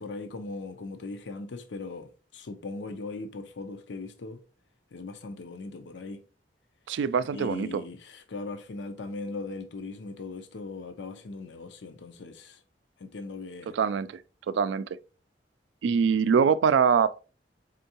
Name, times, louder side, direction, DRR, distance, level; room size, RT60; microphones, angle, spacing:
voice 1, 0.0-4.4 4.9-6.2 7.3-12.6 13.0-13.8, left 3 dB, 75° left, 0.5 m, -39 dB
voice 2, 6.9-7.8 13.7-14.2 14.5-14.8 15.8-17.2, right 6 dB, 80° right, 0.3 m, -23 dB
4.4 x 3.7 x 2.8 m
head